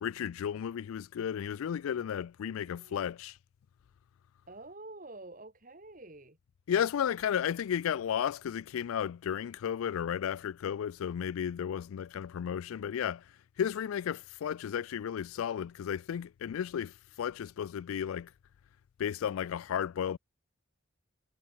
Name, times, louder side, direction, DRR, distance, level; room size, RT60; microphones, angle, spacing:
voice 1, 0.0-3.4 6.7-13.2 13.6-16.9 17.2-18.3 19.0-20.2, left 8 dB, 90° left, 0.3 m, -33 dB
voice 2, 2.5-3.0 4.5-6.4 7.0-7.1, right 2 dB, 40° right, 2.1 m, -49 dB
head